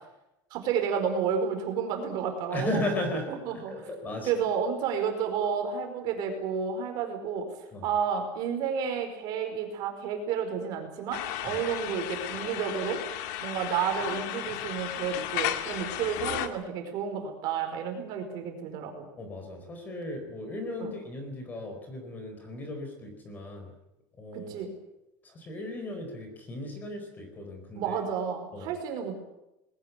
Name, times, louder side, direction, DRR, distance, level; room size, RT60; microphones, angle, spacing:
voice 1, 0.5-2.8 3.3-3.7 4.2-7.5 7.8-13.0 13.4-19.1 20.8-20.9 24.3-24.7 27.7-29.1, right 7 dB, 45° right, 5 dB, 5.0 m, -31 dB
voice 2, 2.5-4.3 7.7-7.9 11.4-11.6 19.2-23.7 24.2-24.6 25.2-28.0 28.5-28.7, left 1 dB, 15° left, 5 dB, 4.3 m, -36 dB
sound 1, 11.1-16.5, left 12 dB, 70° left, 2.1 m, -34 dB
21.0 x 19.0 x 9.4 m, 0.90 s
cardioid pair, 180°, 10 cm